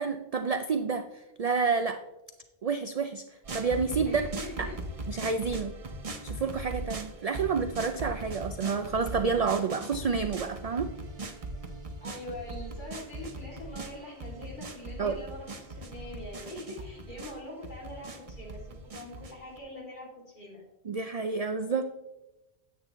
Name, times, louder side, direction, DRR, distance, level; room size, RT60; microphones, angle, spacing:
voice 1, 0.0-2.0 2.6-3.2 3.5-4.3 4.6-4.7 5.1-5.7 6.2-10.9 15.0-15.2 20.8-21.8, right 5 dB, 50° right, 8 dB, 0.4 m, -29 dB
sound 1, 3.4-19.6, right 2 dB, 35° right, 0.8 m, -40 dB
voice 2, 4.1-4.8 12.0-20.6, left 1 dB, 50° left, -3 dB, 3.0 m, -43 dB
9.9 x 8.6 x 3.1 m, 0.99 s
omnidirectional pair, 1.1 m